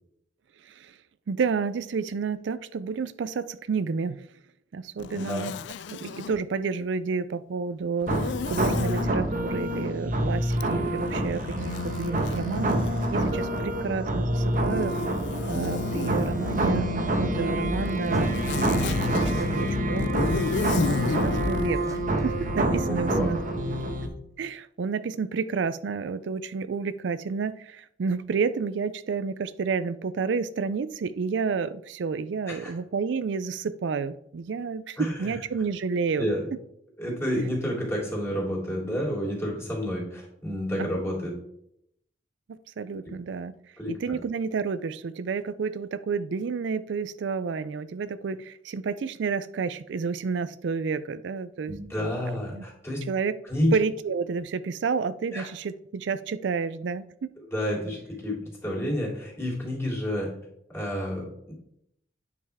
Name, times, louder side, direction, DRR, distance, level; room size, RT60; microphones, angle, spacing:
voice 1, 0.6-1.0 1.3-4.2 4.7-5.5 5.9-8.1 8.5-12.7 13.1-14.9 15.5-22.0 22.2-23.4 24.4-36.3 40.8-40.9 42.5-43.5 43.9-52.6 53.1-53.4 53.7-57.3, right 5 dB, 75° right, 14 dB, 0.4 m, -30 dB
Zipper (clothing), 5.0-6.4 8.0-9.1 10.5-13.8 14.5-16.8 17.7-21.7, left 5 dB, 70° left, 0.3 m, -33 dB
voice 2, 5.1-5.5 13.5-14.0 22.9-23.3 32.5-32.7 35.0-35.4 36.2-36.4 37.0-41.3 43.8-44.2 51.7-53.0 53.5-53.7 55.3-55.5 57.5-60.3 60.7-61.5, equal, 15° left, -4 dB, 3.2 m, -30 dB
sound 1, 8.1-24.1, right 1 dB, 45° right, 1.2 m, -27 dB
sound 2, 17.5-18.5 18.7-19.7 20.0-21.0 21.2-22.2, right 1 dB, 20° right, 0.7 m, -36 dB
9.6 x 5.6 x 3.5 m, 0.73 s
head